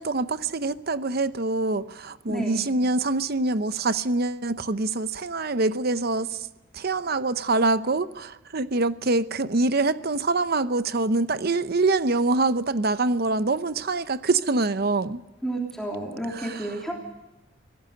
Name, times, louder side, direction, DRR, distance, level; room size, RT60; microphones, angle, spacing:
voice 1, 0.0-6.5 6.7-15.2 16.3-16.8, right 3 dB, 50° right, 13 dB, 0.8 m, -25 dB
voice 2, 2.3-2.6 15.4-16.9, right 1 dB, ahead, -1 dB, 3.3 m, -31 dB
25.0 x 17.5 x 6.7 m, 1.1 s
head